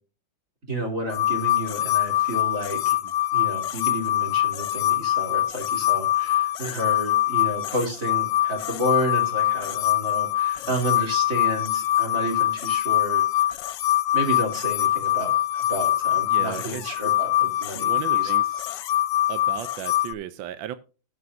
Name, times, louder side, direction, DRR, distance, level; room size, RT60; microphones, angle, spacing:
voice 1, 0.7-3.0 3.3-13.2 13.5-13.6 14.1-18.3, right 1 dB, 40° right, 2 dB, 3.4 m, -31 dB
sound 1, 1.1-20.1, left 14 dB, 70° left, 1.2 m, -24 dB
voice 2, 16.2-17.1 17.7-18.7 19.3-20.7, right 11 dB, 80° right, 12 dB, 1.4 m, -36 dB
19.5 x 6.8 x 2.5 m, 0.34 s
omnidirectional pair, 2.1 m